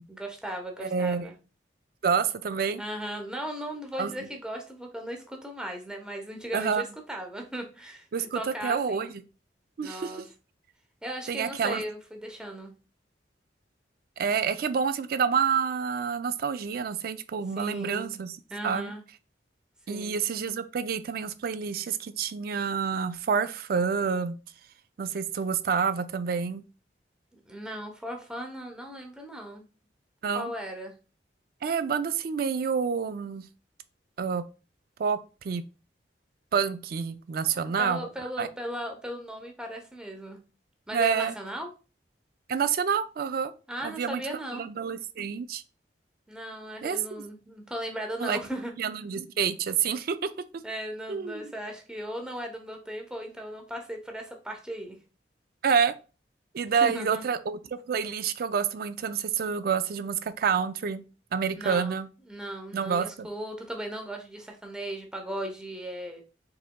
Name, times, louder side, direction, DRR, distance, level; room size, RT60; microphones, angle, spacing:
voice 1, 0.1-1.3 2.8-8.1 8.3-9.1 9.8-10.2 11.0-12.7 17.6-18.2 18.5-19.0 19.9-20.2 27.3-29.6 30.3-30.9 37.8-40.4 40.9-41.7 43.7-44.7 46.3-48.7 50.6-55.0 56.7-57.2 61.6-66.2, equal, 5° right, 0.7 m, -37 dB
voice 2, 0.8-1.3 2.0-2.8 4.0-4.1 6.5-6.8 8.1-9.1 9.8-10.1 11.3-11.8 14.2-18.3 18.6-18.9 19.9-24.4 25.0-26.6 30.2-30.5 31.6-33.4 34.2-34.4 35.0-35.2 35.4-35.6 36.5-38.1 38.4-38.5 40.9-41.3 42.5-43.5 43.8-44.2 44.5-45.6 46.8-47.0 48.2-48.4 48.8-50.3 51.1-51.5 55.6-55.9 56.5-61.0 61.3-62.1 62.7-63.3, right 6 dB, 55° right, 0.3 m, -28 dB
4.8 x 3.4 x 2.2 m
head